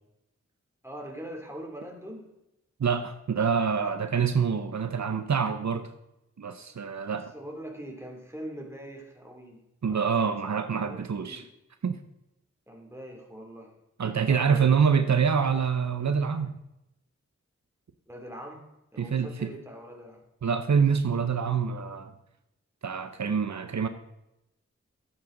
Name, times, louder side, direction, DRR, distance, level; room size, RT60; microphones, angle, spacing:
voice 1, 0.8-2.3 3.8-3.9 7.1-9.6 9.9-10.5 10.9-11.5 12.7-13.7 14.3-15.1 18.1-18.6 18.9-20.2 23.2-23.3, equal, 10° right, 1 dB, 2.8 m, -43 dB
voice 2, 2.8-5.9 6.4-7.3 9.8-11.5 11.8-12.0 14.0-16.5 19.0-19.5 20.4-22.1 22.8-23.9, right 6 dB, 70° right, 9 dB, 0.7 m, -26 dB
12.5 x 8.7 x 3.9 m, 0.88 s
wide cardioid pair, 55°, 29 cm